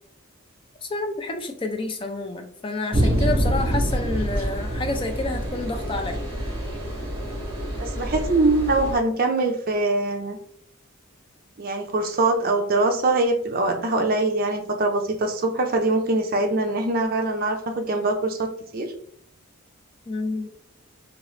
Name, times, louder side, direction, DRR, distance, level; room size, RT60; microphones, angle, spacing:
voice 1, 0.8-6.2 20.1-20.5, left 2 dB, 25° left, 5 dB, 0.3 m, -29 dB
sound 1, 2.9-8.9, right 1 dB, 25° right, 1.1 m, -26 dB
voice 2, 7.8-10.4 11.6-18.9, right 2 dB, 40° right, 3 dB, 0.5 m, -23 dB
2.9 x 2.8 x 3.0 m, 0.63 s
head